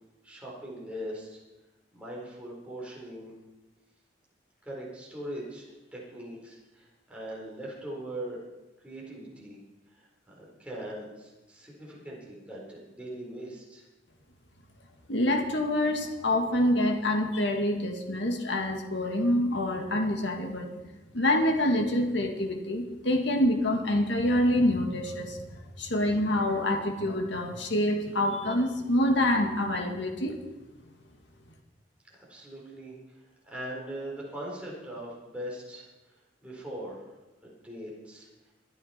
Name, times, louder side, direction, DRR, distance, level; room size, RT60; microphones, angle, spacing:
voice 1, 0.2-1.4 1.9-3.3 4.6-8.4 8.8-9.6 9.9-13.8 32.1-35.9 36.4-37.1 37.4-38.3, right 1 dB, 5° right, -5 dB, 4.2 m, -41 dB
voice 2, 15.1-20.7 21.1-25.4 25.8-30.4, left 1 dB, 75° left, 3 dB, 2.0 m, -26 dB
24.5 x 9.2 x 4.4 m, 1.1 s
head